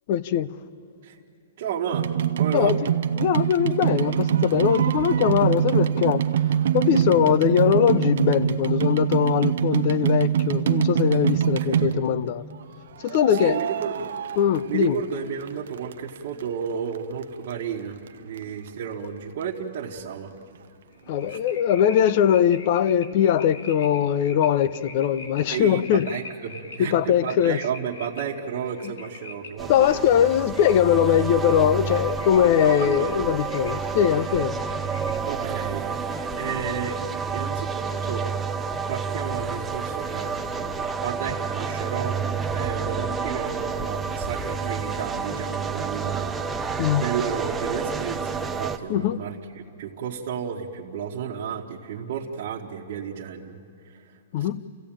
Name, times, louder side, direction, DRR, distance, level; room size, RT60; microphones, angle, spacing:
voice 1, 0.1-0.5 2.5-2.8 3.2-6.2 6.7-12.4 13.0-13.6 14.4-15.0 21.1-26.1 26.9-27.6 29.7-34.6 46.8-47.1 48.9-49.2 54.3-54.6, left 9 dB, 35° left, 0.6 m, -21 dB
voice 2, 1.6-2.1 2.4-2.7 6.8-7.2 11.4-12.0 13.3-14.1 14.7-18.0 18.2-20.3 21.3-21.4 25.5-30.0 32.6-33.3 35.3-37.0 37.3-38.3 38.9-40.7 41.0-46.7 47.0-53.6 53.8-54.5, right 7 dB, 45° right, 1.4 m, -32 dB
sound 1, 1.9-12.3 13.1-15.2 15.5-16.4 16.9-17.0 17.2-17.3 17.5-17.6 18.1-18.2 18.4-18.5, right 9 dB, 65° right, 0.7 m, -24 dB
sound 2, 20.9-35.5, left 4 dB, 70° left, 2.3 m, -45 dB
sound 3, 29.6-48.8, right 5 dB, 5° right, 0.6 m, -29 dB
29.5 x 15.0 x 8.9 m
hypercardioid pair, 170°, 0 cm